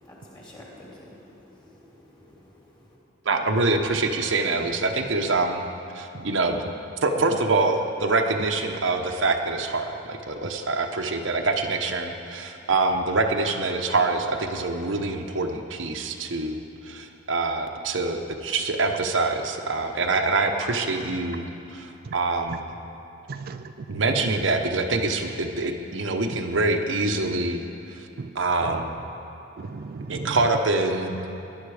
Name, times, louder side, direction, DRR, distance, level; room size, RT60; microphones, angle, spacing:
voice 1, 0.0-3.0, left 1 dB, 25° left, -5 dB, 3.3 m, -49 dB
voice 2, 3.2-5.6 5.9-6.6 7.0-21.5 21.7-22.7 23.9-27.6 27.9-28.1 28.3-29.0 30.1-31.6, right 3 dB, 70° right, 3 dB, 1.0 m, -25 dB
voice 3, 23.3-24.3 26.3-26.4 28.2-28.3 28.6-28.8 29.6-30.5, right 4 dB, 50° right, 9 dB, 0.4 m, -36 dB
18.0 x 11.0 x 4.9 m, 2.9 s
head